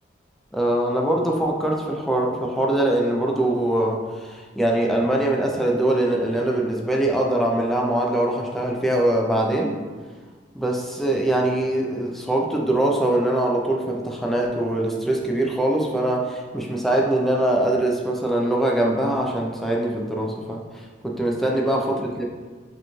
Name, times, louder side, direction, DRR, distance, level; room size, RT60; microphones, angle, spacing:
voice 1, 0.5-9.8 10.5-20.6 21.0-22.2, right 1 dB, ahead, -2 dB, 0.4 m, -22 dB
5.0 x 3.0 x 2.3 m, 1.4 s
head